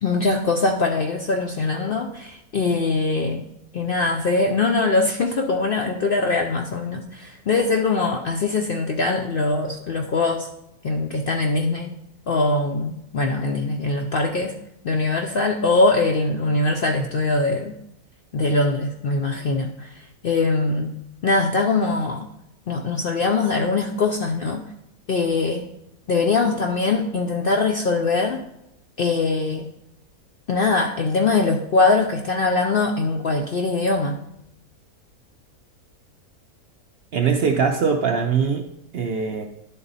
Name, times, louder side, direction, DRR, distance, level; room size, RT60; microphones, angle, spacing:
voice 1, 0.0-3.4 3.7-10.5 10.8-11.9 12.3-14.6 14.8-17.8 18.3-20.9 21.2-22.3 22.7-24.6 25.1-25.6 26.1-28.4 29.0-29.7 30.5-34.2, left 3 dB, 65° left, 3 dB, 0.5 m, -22 dB
voice 2, 37.1-39.5, right 6 dB, 65° right, 4 dB, 0.6 m, -22 dB
11.0 x 3.9 x 4.0 m, 0.84 s
omnidirectional pair, 1.5 m